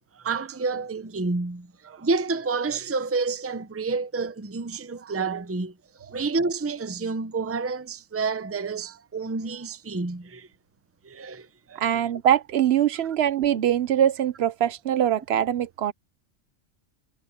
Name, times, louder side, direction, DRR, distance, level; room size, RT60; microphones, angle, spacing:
voice 1, 0.2-5.7 6.0-10.5 11.0-12.0, right 4 dB, 15° right, 0.6 m, -29 dB
voice 2, 11.8-15.9, right 10 dB, 60° right, 0.9 m, -23 dB
omnidirectional pair, 1.3 m